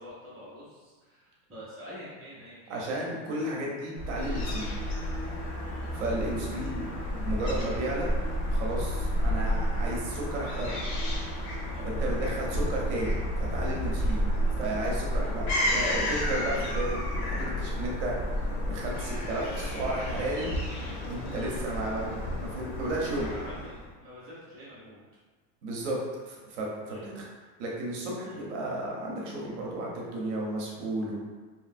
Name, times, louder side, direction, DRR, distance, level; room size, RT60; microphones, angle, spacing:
voice 1, 0.0-2.9 5.6-6.0 11.7-12.2 14.0-14.2 15.1-15.3 23.0-25.0 26.9-27.0 28.2-28.4, equal, 10° right, -18 dB, 0.3 m, -47 dB
voice 2, 2.7-4.7 5.9-8.1 8.5-10.8 11.8-14.2 14.6-18.1 18.7-20.6 21.0-23.3 25.6-26.0 26.3-27.3 27.6-31.2, right 1 dB, 50° right, -3 dB, 0.6 m, -33 dB
Fowl / Gull seagull, 4.0-23.9, equal, 65° left, 0.9 m, -31 dB
2.8 x 2.5 x 2.4 m, 1.4 s
supercardioid pair, 180°, 46 cm